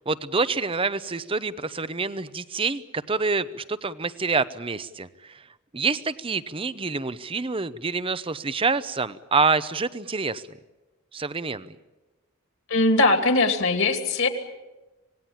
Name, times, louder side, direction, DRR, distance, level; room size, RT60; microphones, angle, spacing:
voice 1, 0.0-5.4 5.7-10.4 11.1-11.8, right 4 dB, 25° right, 15 dB, 0.7 m, -27 dB
voice 2, 12.7-14.3, left 2 dB, 60° left, 6 dB, 2.6 m, -20 dB
26.5 x 19.0 x 8.8 m, 1.1 s
head